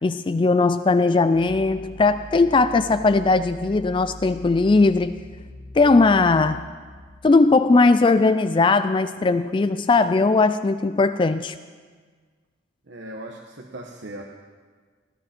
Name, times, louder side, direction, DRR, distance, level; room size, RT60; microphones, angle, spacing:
voice 1, 0.0-5.2 5.7-6.6 7.2-11.5, left 3 dB, 25° left, 12 dB, 0.3 m, -19 dB
sound 1, 1.3-7.3, equal, 55° left, 6.5 m, -41 dB
voice 2, 12.9-14.2, right 1 dB, 60° right, 1 dB, 1.1 m, -38 dB
21.0 x 14.5 x 4.4 m, 1.5 s
head